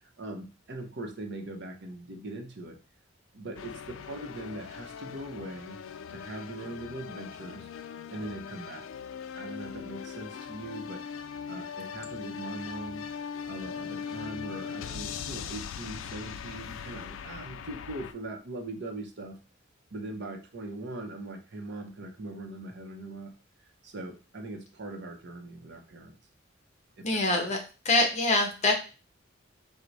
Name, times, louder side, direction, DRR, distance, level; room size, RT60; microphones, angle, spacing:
voice 1, 0.2-2.8 3.3-5.8 6.1-7.7 8.1-8.9 9.3-11.0 11.5-13.0 13.5-19.4 19.9-23.3 23.8-26.2 27.0-27.2, right 2 dB, 60° right, 4 dB, 0.7 m, -40 dB
sound 1, 3.6-18.1, left 7 dB, 75° left, 0.3 m, -40 dB
voice 2, 27.0-28.7, left 2 dB, 35° left, 3 dB, 0.9 m, -25 dB
4.5 x 2.1 x 3.9 m, 0.33 s
head